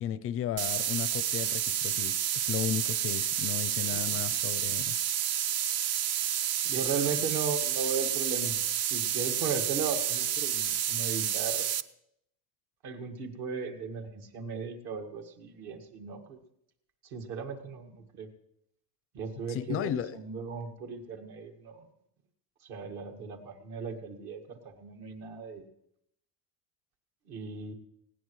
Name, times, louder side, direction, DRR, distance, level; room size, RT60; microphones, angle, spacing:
voice 1, 0.0-5.0 19.5-20.2, left 10 dB, 35° left, 18 dB, 0.4 m, -34 dB
sound 1, 0.6-11.8, right 10 dB, 35° right, 0.4 m, -30 dB
voice 2, 3.8-4.2 6.6-8.6 8.8-11.7 12.8-16.4 17.0-18.3 19.1-21.9 22.6-25.6 27.3-27.7, right 5 dB, 60° right, 4 dB, 2.0 m, -37 dB
19.5 x 16.5 x 3.2 m, 0.75 s
cardioid pair, 130°, 44 cm